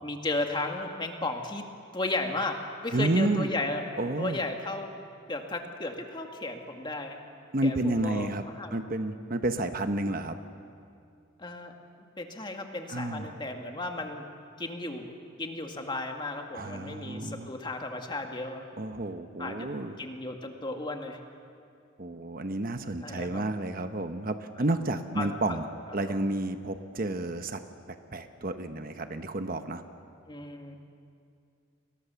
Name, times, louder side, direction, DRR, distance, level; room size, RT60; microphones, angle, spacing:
voice 1, 0.0-1.6 1.9-3.9 4.2-4.9 5.3-7.2 7.6-8.3 8.6-8.8 11.4-11.8 12.2-14.3 14.6-15.1 15.4-18.6 19.4-19.7 20.0-21.2 23.0-23.5 24.6-24.7 25.2-25.6 26.1-26.2 30.3-30.8, left 2 dB, 25° left, 3 dB, 1.9 m, -34 dB
voice 2, 2.9-3.5 4.0-4.4 7.5-8.4 8.7-10.4 12.9-13.3 16.5-17.5 18.8-20.0 22.0-25.7 25.9-27.6 27.9-29.8, right 2 dB, 45° right, 8 dB, 1.0 m, -30 dB
30.0 x 21.5 x 7.0 m, 2.4 s
head